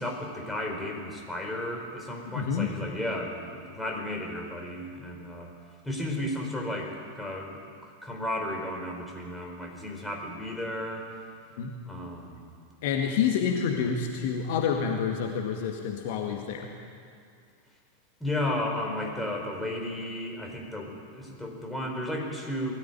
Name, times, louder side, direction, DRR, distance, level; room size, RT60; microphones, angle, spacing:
voice 1, 0.0-5.5 5.8-7.6 7.8-11.1 11.8-12.5 18.2-22.7, left 1 dB, 5° left, 0 dB, 4.5 m, -34 dB
voice 2, 2.3-2.7 11.6-11.7 12.8-16.7, left 7 dB, 50° left, 2 dB, 1.9 m, -28 dB
20.5 x 14.0 x 9.3 m, 2.3 s
figure-of-eight pair, 90°, 0 cm